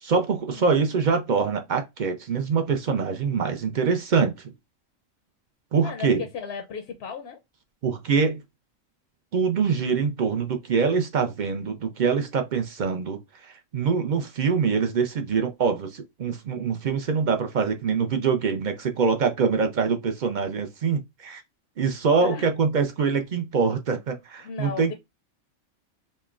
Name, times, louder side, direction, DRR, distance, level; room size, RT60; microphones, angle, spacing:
voice 1, 0.0-4.3 5.7-6.2 7.8-8.4 9.3-21.4 21.8-24.9, right 5 dB, 60° right, 0.5 m, -24 dB
voice 2, 5.8-7.4 22.2-22.5 24.4-24.9, left 6 dB, 65° left, 0.7 m, -35 dB
5.2 x 2.1 x 2.4 m
omnidirectional pair, 1.4 m